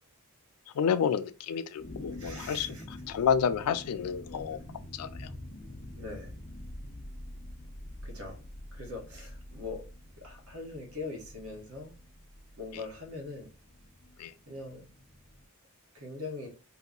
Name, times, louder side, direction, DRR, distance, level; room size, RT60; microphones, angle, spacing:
voice 1, 0.8-4.6 4.9-5.3 14.2-14.3, left 7 dB, 85° left, 0.3 m, -30 dB
sound 1, 1.8-15.4, left 1 dB, 25° left, 0.5 m, -46 dB
voice 2, 2.2-2.8 5.9-6.3 8.0-8.4 8.7-9.8 10.2-11.9 12.6-13.5 14.5-14.9 15.9-16.5, left 3 dB, 75° right, 1.2 m, -41 dB
2.8 x 2.3 x 3.6 m
head